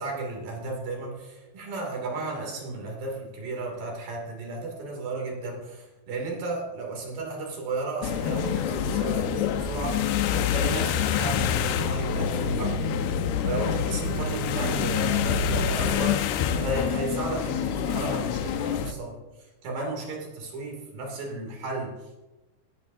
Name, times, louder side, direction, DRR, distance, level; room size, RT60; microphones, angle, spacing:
voice 1, 0.0-13.0 13.4-22.2, right 3 dB, 60° right, 0 dB, 4.4 m, -34 dB
sound 1, 8.0-18.9, left 9 dB, 85° left, 2.7 m, -27 dB
sound 2, 11.2-16.3, left 1 dB, 50° left, 5.2 m, -34 dB
17.5 x 12.0 x 2.8 m, 1.1 s
omnidirectional pair, 4.6 m